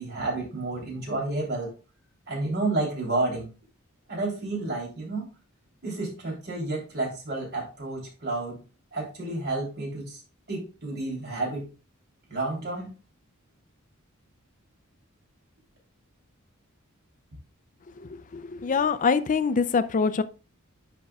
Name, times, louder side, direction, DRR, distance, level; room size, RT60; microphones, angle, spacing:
voice 1, 0.0-1.7 2.3-3.5 4.1-5.3 5.8-8.6 8.9-10.2 10.5-11.7 12.3-12.9, right 2 dB, 50° right, 3.2 m, -30 dB
voice 2, 18.3-20.2, left 5 dB, 40° left, 0.4 m, -24 dB
10.5 x 5.3 x 2.3 m
head